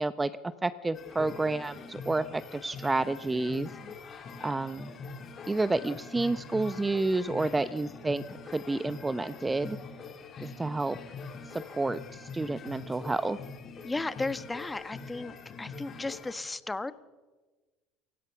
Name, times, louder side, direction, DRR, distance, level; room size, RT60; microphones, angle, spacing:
voice 1, 0.0-3.7 4.4-4.9 5.5-9.8 10.4-11.0 11.5-13.4, right 2 dB, 15° right, 16 dB, 0.8 m, -30 dB
sound 1, 0.9-16.3, left 4 dB, 40° left, 3.7 m, -44 dB
voice 2, 13.8-16.9, left 2 dB, 15° left, 14 dB, 1.3 m, -35 dB
28.0 x 16.5 x 7.0 m, 1.3 s
hypercardioid pair, 75°, 0 cm